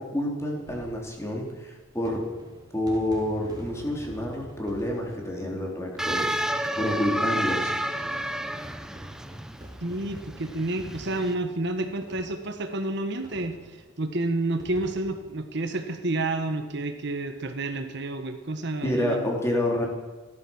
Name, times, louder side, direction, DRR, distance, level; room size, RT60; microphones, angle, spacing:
voice 1, 0.0-2.2 2.7-7.7 8.0-8.1 18.8-19.9, left 1 dB, 15° left, 0 dB, 3.3 m, -28 dB
sound 1, 0.5-16.6 16.9-17.0 17.2-17.3 18.5-18.8, right 1 dB, 20° right, 3.6 m, -47 dB
sound 2, 6.0-11.3, right 1 dB, 5° right, 0.7 m, -30 dB
voice 2, 9.8-13.6 14.0-19.3, right 2 dB, 55° right, 7 dB, 1.4 m, -30 dB
16.0 x 12.5 x 7.1 m, 1.3 s
head